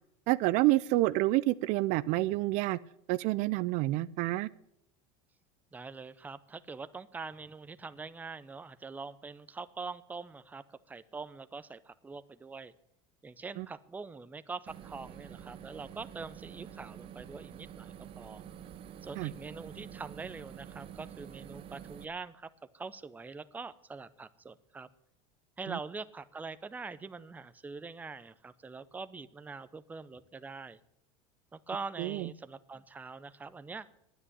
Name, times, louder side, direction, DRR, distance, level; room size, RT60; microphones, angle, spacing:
voice 1, 0.3-2.8 3.1-4.5 13.6-13.7 19.2-19.3 25.7-25.8 32.0-32.3, right 18 dB, 55° right, 17 dB, 0.5 m, -28 dB
voice 2, 5.7-12.7 13.2-18.4 19.0-24.9 25.6-30.8 31.5-33.9, right 4 dB, 10° right, 13 dB, 0.6 m, -44 dB
sound 1, 14.7-22.0, right 9 dB, 35° right, 1.0 m, -48 dB
10.0 x 9.7 x 9.8 m, 0.78 s
supercardioid pair, 125°, 15 cm